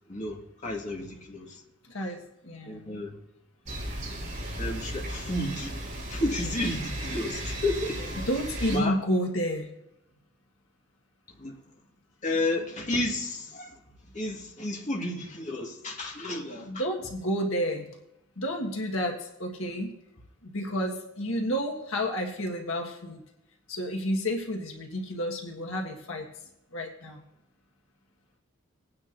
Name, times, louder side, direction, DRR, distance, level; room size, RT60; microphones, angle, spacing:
voice 1, 0.1-1.6 2.7-3.2 4.6-5.7 6.1-8.3 8.7-9.0 11.4-11.6 12.2-13.7 14.1-16.7, left 1 dB, 35° left, 2.0 m, -32 dB
voice 2, 1.9-3.0 8.3-9.7 16.6-17.9 18.4-19.9 20.4-23.2 23.7-26.3 26.7-27.2, equal, 75° left, 1.7 m, -30 dB
sound 1, 3.7-8.8, right 1 dB, 35° right, 4.2 m, -35 dB
20.5 x 9.6 x 2.8 m
head